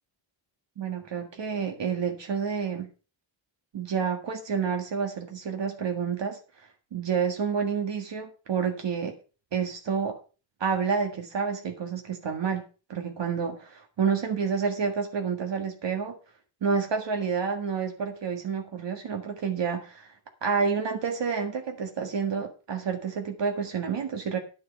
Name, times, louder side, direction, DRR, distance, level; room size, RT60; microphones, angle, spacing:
voice 1, 0.8-2.9 3.7-6.4 6.9-9.1 9.5-10.2 10.6-12.6 12.9-16.2 16.6-20.1 20.4-24.4, right 6 dB, 65° right, 4 dB, 1.8 m, -29 dB
10.5 x 8.3 x 5.3 m, 0.35 s
wide cardioid pair, 115°, 47 cm